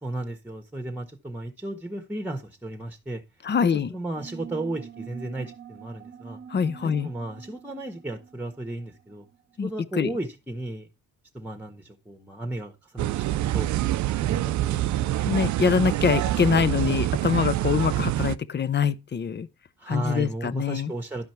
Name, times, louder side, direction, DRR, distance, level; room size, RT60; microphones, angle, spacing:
voice 1, 0.0-3.2 3.9-6.4 6.8-9.2 9.6-10.9 11.3-13.7 14.2-14.9 15.2-15.5 19.8-21.3, right 1 dB, 5° right, 1.4 m, -34 dB
voice 2, 3.4-3.9 6.5-7.1 9.6-10.1 15.1-19.5 19.9-20.9, left 6 dB, 35° left, 0.7 m, -24 dB
sound 1, 4.1-9.4, right 8 dB, 35° right, 1.1 m, -45 dB
sound 2, 13.0-18.4, right 14 dB, 70° right, 0.5 m, -26 dB
12.0 x 5.1 x 4.4 m
cardioid pair, 90°, 30 cm